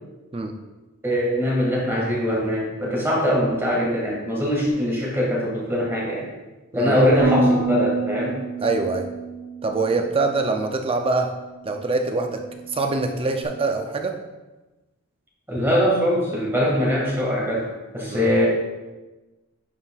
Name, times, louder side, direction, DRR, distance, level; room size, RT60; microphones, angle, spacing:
voice 1, 1.0-6.2 6.7-8.4 15.5-18.5, equal, 10° right, -4 dB, 1.9 m, -22 dB
voice 2, 6.7-7.1 8.6-9.1 9.6-11.3 11.6-14.2 18.1-18.4, right 3 dB, 25° right, 4 dB, 0.5 m, -24 dB
Bass guitar, 7.2-13.4, right 3 dB, 85° right, 1.2 m, -29 dB
11.0 x 5.6 x 2.4 m, 1.1 s
head